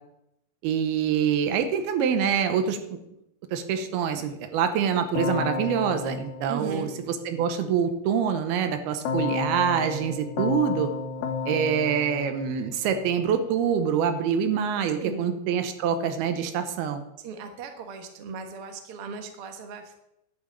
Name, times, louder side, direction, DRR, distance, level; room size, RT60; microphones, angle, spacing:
voice 1, 0.6-3.0 3.5-10.9 11.5-17.0, right 7 dB, 80° right, 9 dB, 2.8 m, -25 dB
Keyboard (musical), 5.2-7.5 9.1-13.3, left 4 dB, 75° left, 2.9 m, -32 dB
voice 2, 6.5-6.9 15.0-15.3 17.2-20.0, right 5 dB, 60° right, 5 dB, 1.5 m, -37 dB
11.0 x 6.2 x 8.7 m, 0.86 s
omnidirectional pair, 4.5 m